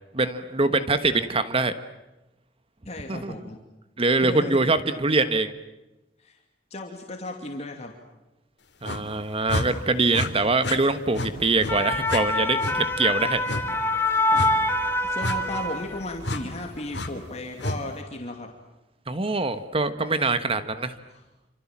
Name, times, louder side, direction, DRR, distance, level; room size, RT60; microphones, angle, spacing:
voice 1, 0.1-1.7 3.1-3.5 4.0-5.5 8.8-13.4 19.1-20.9, right 3 dB, 35° right, 11 dB, 1.3 m, -24 dB
voice 2, 2.8-3.6 4.2-4.6 6.2-6.4 6.7-7.9 14.3-14.5 15.0-18.5 21.1-21.2, left 2 dB, 40° left, 2 dB, 2.8 m, -35 dB
sound 1, 8.8-9.0 9.5-9.7 10.1-10.3 10.6-10.8 11.1-11.3 11.6-11.8 12.1-12.2 12.6-12.8 13.5-13.6 14.3-14.5 15.2-15.4 16.2-16.4 16.9-17.1 17.6-17.8, left 2 dB, 70° left, 3.2 m, -29 dB
sound 2, 11.4-16.2 16.6-16.8, left 2 dB, 15° left, 2.1 m, -25 dB
28.0 x 26.5 x 7.4 m, 1.0 s
head